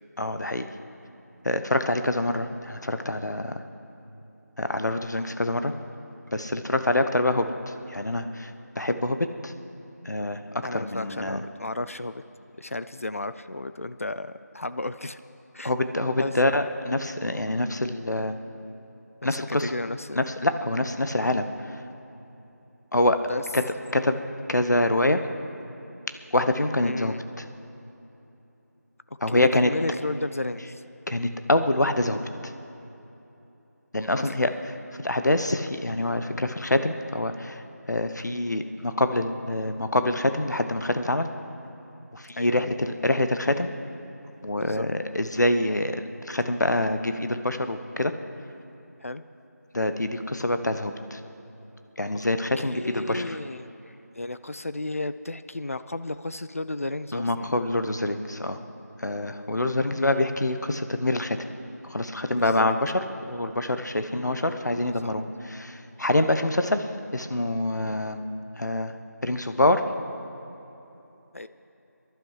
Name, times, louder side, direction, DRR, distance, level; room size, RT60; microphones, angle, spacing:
voice 1, 0.2-0.7 1.4-3.6 4.6-5.7 6.3-9.5 10.0-10.4 10.7-11.4 15.6-18.4 19.2-19.7 20.1-21.8 22.9-23.2 23.5-23.6 23.9-24.2 24.5-25.2 26.3-27.4 29.2-29.7 31.1-32.5 33.9-34.5 35.0-37.6 37.9-41.3 42.1-43.7 44.4-48.1 49.7-51.2 52.0-53.4 57.1-58.6 59.0-61.4 61.9-66.9 67.1-68.2 68.6-68.9 69.2-69.8, left 1 dB, 75° left, 8 dB, 1.0 m, -25 dB
voice 2, 10.6-12.2 12.6-15.2 15.5-15.7 16.2-16.3 19.3-20.2 23.3-23.4 26.8-27.2 29.3-30.8 34.1-34.5 42.4-42.7 44.6-44.9 49.0-49.2 52.1-52.2 52.6-57.5 59.9-60.5 62.4-62.7 64.1-65.1 71.3-71.5, left 2 dB, 50° left, 13 dB, 0.4 m, -34 dB
22.5 x 11.5 x 4.9 m, 3.0 s
figure-of-eight pair, 170°, 9 cm